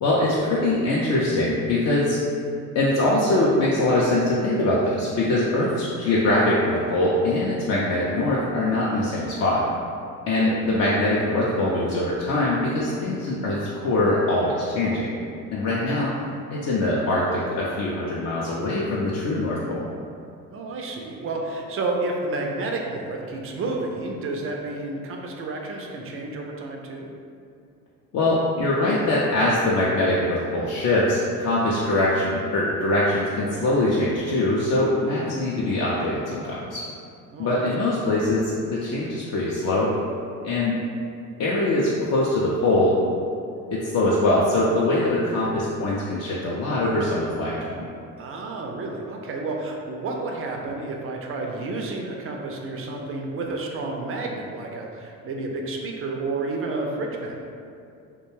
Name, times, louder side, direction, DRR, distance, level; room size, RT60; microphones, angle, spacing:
voice 1, 0.0-2.2 2.7-9.6 10.3-15.1 15.5-16.1 16.5-19.8 28.1-36.8 37.4-39.9 40.4-40.8 41.4-43.0 43.7-47.9, left 1 dB, 40° left, -6 dB, 0.5 m, -23 dB
voice 2, 10.2-10.6 15.7-16.0 20.5-27.1 35.2-35.5 37.3-37.9 45.3-45.5 48.2-57.4, right 2 dB, 35° right, 1 dB, 0.4 m, -31 dB
2.2 x 2.2 x 3.0 m, 2.4 s
hypercardioid pair, 60°, 42 cm